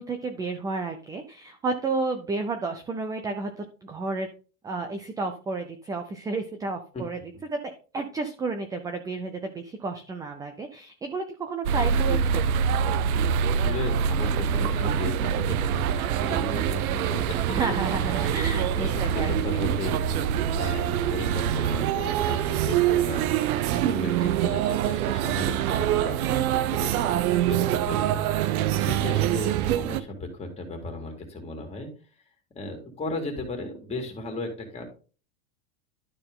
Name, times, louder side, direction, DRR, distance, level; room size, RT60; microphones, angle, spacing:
voice 1, 0.0-4.3 4.6-7.2 7.5-12.4 17.5-19.6, right 3 dB, 10° right, 6 dB, 0.4 m, -31 dB
sound 1, 11.6-30.0, right 9 dB, 85° right, 0.7 m, -25 dB
voice 2, 13.5-17.6 17.9-31.9 32.5-34.9, left 2 dB, 15° left, 2 dB, 2.4 m, -36 dB
12.0 x 4.4 x 3.7 m, 0.37 s
supercardioid pair, 145°, 42 cm